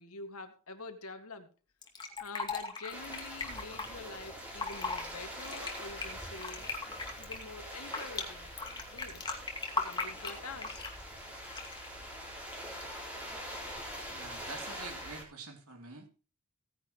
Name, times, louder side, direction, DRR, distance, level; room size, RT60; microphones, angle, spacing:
voice 1, 0.0-1.5 2.2-6.7 7.2-9.2 9.7-10.9, left 3 dB, 75° left, 7 dB, 2.0 m, -46 dB
Fill (with liquid), 1.8-3.9 4.5-5.0 5.4-8.2 8.6-11.0 11.5-11.9, left 4 dB, 20° left, 2.3 m, -37 dB
sound 1, 2.9-15.2, equal, 5° right, 4.2 m, -44 dB
voice 2, 14.1-16.1, right 4 dB, 75° right, 4 dB, 3.2 m, -47 dB
17.0 x 10.0 x 3.1 m, 0.35 s
head